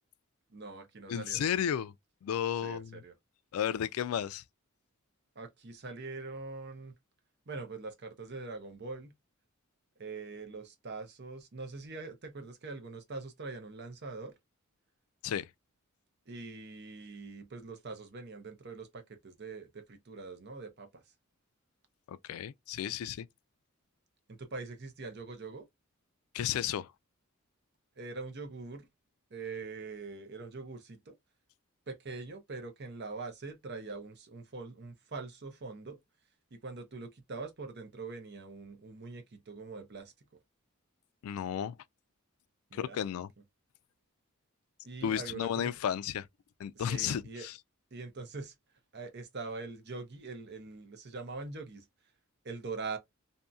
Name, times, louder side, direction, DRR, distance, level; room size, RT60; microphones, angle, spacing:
voice 1, 0.5-1.5 2.6-3.1 5.4-6.9 7.5-9.1 10.0-14.3 16.3-21.0 24.3-25.6 28.0-28.9 29.3-31.1 31.9-36.0 36.5-40.1 42.7-43.0 44.8-45.7 46.7-47.5 47.9-48.5 48.9-51.9 52.4-53.0, right 3 dB, 50° right, 0.7 m, -43 dB
voice 2, 1.1-1.9 2.2-3.0 3.5-4.4 15.2-15.5 22.1-23.3 26.3-26.9 41.2-41.8 42.7-43.3 45.0-46.3 46.6-47.6, left 9 dB, 85° left, 0.3 m, -33 dB
2.7 x 2.6 x 2.2 m
head